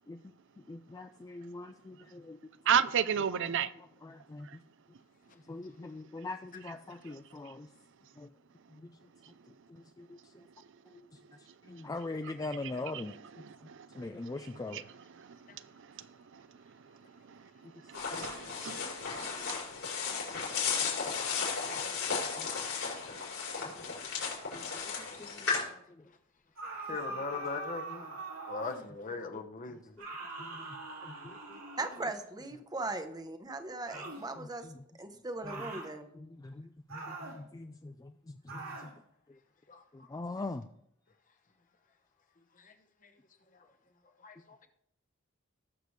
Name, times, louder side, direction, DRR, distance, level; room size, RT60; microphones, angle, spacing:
voice 1, 0.7-2.4 3.4-3.6 4.0-4.6 5.5-7.7 8.2-8.3 8.7-8.9 9.7-10.5 10.9-11.0 11.4-13.4 13.9-14.8 17.6-17.7 18.1-18.3 19.2-19.3 20.8-20.9 21.7-22.0 22.4-22.5 23.7-23.8 24.5-26.1 29.7-30.1 30.4-31.6 34.4-34.8 36.1-38.9 39.9-40.7, left 2 dB, 15° left, 0.3 m, -43 dB
voice 2, 2.7-3.7 4.5-4.6 12.9-13.0 13.4-14.3 14.7-14.8 15.2-16.1 16.3-16.5 17.3-19.5, right 8 dB, 60° right, 0.5 m, -34 dB
sound 1, 17.9-25.6, left 5 dB, 75° left, 5.1 m, -35 dB
sound 2, 26.6-28.9 30.0-32.2 33.9-34.3 35.4-35.9 36.9-37.4 38.5-38.9, right 2 dB, 80° right, 2.7 m, -43 dB
voice 3, 26.9-28.2 28.5-30.0 39.7-39.8 42.6-42.7 44.2-44.6, left 4 dB, 40° left, 1.0 m, -39 dB
voice 4, 31.8-34.7 35.0-36.1, right 2 dB, 20° right, 0.9 m, -38 dB
19.0 x 6.8 x 3.3 m
head